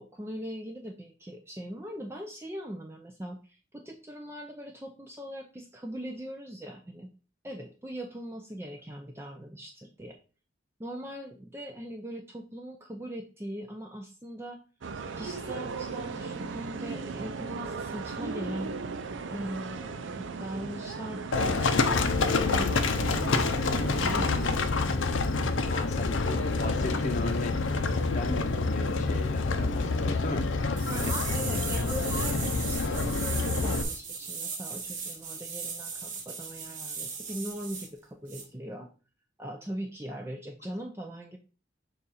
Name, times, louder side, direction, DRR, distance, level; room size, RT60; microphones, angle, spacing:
voice 1, 0.0-7.1 7.4-10.2 10.8-14.6 15.0-18.7 19.3-21.6 22.4-25.1 30.9-38.9 39.4-41.4, equal, 15° right, 2 dB, 0.5 m, -40 dB
sound 1, 14.8-24.6, right 4 dB, 80° right, 0.5 m, -37 dB
Livestock farm animals working animals, 21.3-33.8, left 3 dB, 90° left, 0.7 m, -27 dB
voice 2, 25.7-27.5 28.1-30.7 31.0-31.1, left 2 dB, 40° left, 4 dB, 0.8 m, -36 dB
sound 2, 30.8-37.9 38.3-38.4, right 5 dB, 40° right, 1.2 m, -37 dB
6.9 x 2.5 x 5.5 m, 0.36 s
head